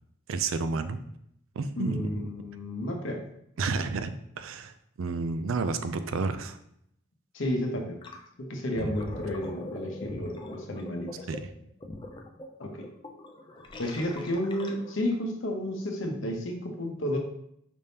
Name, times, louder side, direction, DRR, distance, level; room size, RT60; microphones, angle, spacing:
voice 1, 0.3-1.0 1.6-2.2 3.6-4.7 5.0-6.6 8.8-9.0 11.3-11.4, right 4 dB, 70° right, 10 dB, 0.4 m, -31 dB
voice 2, 1.7-3.2 7.3-8.0 8.4-11.3 12.6-12.9 13.8-17.2, left 1 dB, 65° left, 2 dB, 0.8 m, -32 dB
Gurgling, 8.0-8.2 8.6-15.1, left 2 dB, 20° left, 0.4 m, -41 dB
5.1 x 3.5 x 2.8 m, 0.73 s
head